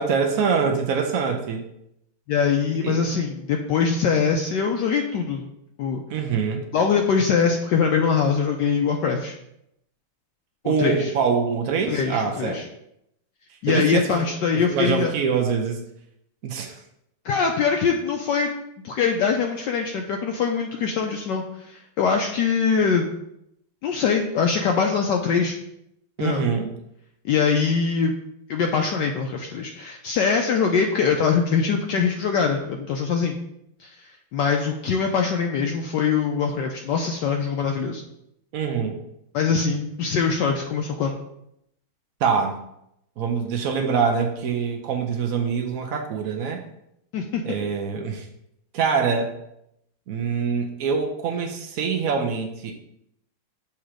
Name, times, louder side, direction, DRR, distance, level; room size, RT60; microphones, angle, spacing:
voice 1, 0.0-1.7 2.8-3.0 6.1-6.6 10.6-12.6 13.7-14.3 14.5-15.8 16.4-16.8 26.2-26.7 38.5-39.0 42.2-42.6 43.2-46.6 47.4-48.3 48.7-49.4 50.1-52.8, right 6 dB, 85° right, 2 dB, 0.7 m, -24 dB
voice 2, 2.3-5.4 5.8-6.0 6.7-9.3 10.6-11.1 11.9-12.6 13.6-15.1 17.2-18.5 18.8-23.1 23.8-25.6 26.2-26.4 27.2-28.1 28.5-33.4 33.8-33.9 34.3-38.0 39.3-41.2 47.1-47.4, left 6 dB, 75° left, 2 dB, 1.0 m, -23 dB
7.0 x 2.9 x 4.9 m, 0.79 s
omnidirectional pair, 2.3 m